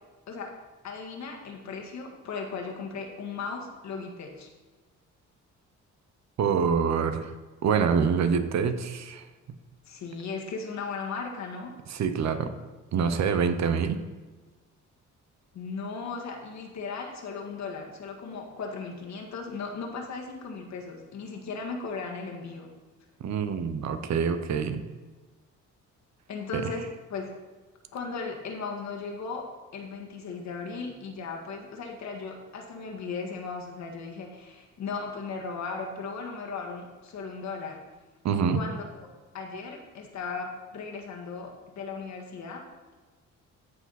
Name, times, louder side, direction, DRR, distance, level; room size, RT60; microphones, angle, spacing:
voice 1, 0.8-4.5 9.9-11.7 15.5-22.7 26.3-27.3 27.9-29.5 29.7-37.8 38.5-39.1 39.3-42.6, left 4 dB, 65° left, 1 dB, 1.8 m, -37 dB
voice 2, 6.4-7.3 7.6-9.3 11.9-12.5 12.9-14.0 23.2-24.8 26.5-26.7 38.2-38.6, right 6 dB, 65° right, 10 dB, 0.9 m, -26 dB
14.0 x 4.9 x 4.2 m, 1.3 s
cardioid pair, 90°, 30 cm